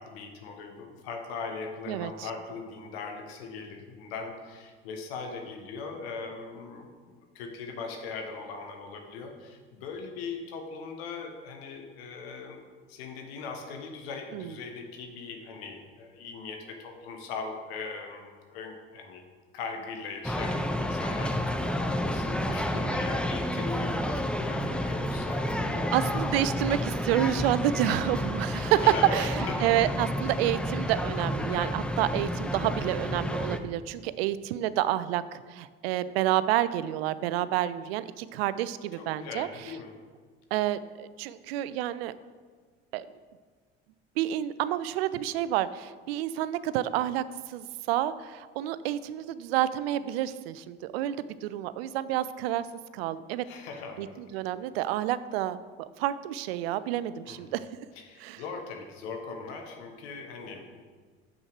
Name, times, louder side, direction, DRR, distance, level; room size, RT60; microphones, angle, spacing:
voice 1, 0.0-12.6 12.9-19.2 19.5-25.9 28.8-29.7 38.9-39.9 53.4-54.2 57.3-57.4 58.0-60.8, left 4 dB, 75° left, 4 dB, 1.2 m, -40 dB
sound 1, 20.2-33.6, equal, 5° left, 0.6 m, -30 dB
voice 2, 25.6-39.5 40.5-42.1 42.9-43.1 44.2-52.7 52.9-53.4 54.0-55.6 56.0-57.7 58.2-58.4, right 13 dB, 75° right, 15 dB, 0.5 m, -29 dB
7.3 x 6.2 x 4.6 m, 1.5 s
hypercardioid pair, 60°, 31 cm